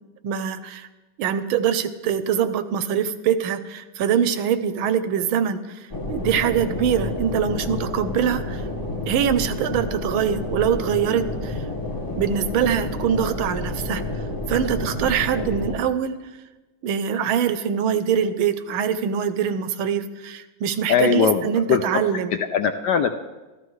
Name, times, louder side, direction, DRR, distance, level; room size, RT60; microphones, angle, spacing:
voice 1, 0.2-0.9 1.2-8.6 9.1-11.6 12.2-14.2 14.5-16.2 16.8-22.3, right 8 dB, 85° right, 11 dB, 1.5 m, -23 dB
sound 1, 5.9-15.7, left 2 dB, 20° left, 0.5 m, -30 dB
voice 2, 20.9-23.1, left 7 dB, 75° left, 7 dB, 1.0 m, -21 dB
14.0 x 13.5 x 3.2 m, 1.1 s
omnidirectional pair, 2.2 m